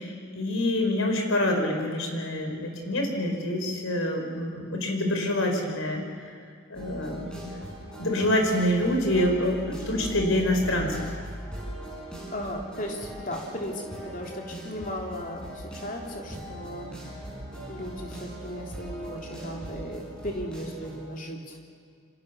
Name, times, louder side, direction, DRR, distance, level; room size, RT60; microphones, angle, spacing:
voice 1, 0.0-6.0 6.7-7.6 8.0-11.0, left 1 dB, 85° left, 3 dB, 5.0 m, -26 dB
sound 1, 6.7-21.0, right 1 dB, 5° left, 7.8 m, -40 dB
voice 2, 12.3-17.1 17.7-21.6, equal, 40° left, 1 dB, 3.4 m, -36 dB
27.5 x 25.5 x 7.0 m, 2.3 s
head